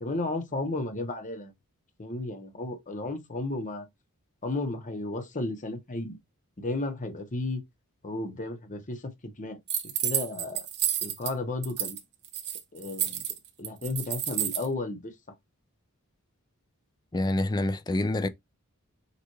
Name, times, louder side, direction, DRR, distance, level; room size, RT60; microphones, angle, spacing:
voice 1, 0.0-1.5 2.0-3.9 4.4-6.2 6.6-7.6 8.0-9.6 10.0-10.7 11.0-12.0 12.7-13.2 13.6-15.1, left 2 dB, 35° left, 1.0 m, -33 dB
sound 1, 9.7-11.3 11.6-12.0 12.2-14.7, right 10 dB, 50° right, 0.9 m, -30 dB
voice 2, 17.1-18.3, left 1 dB, 20° left, 0.4 m, -27 dB
6.7 x 2.5 x 3.1 m
head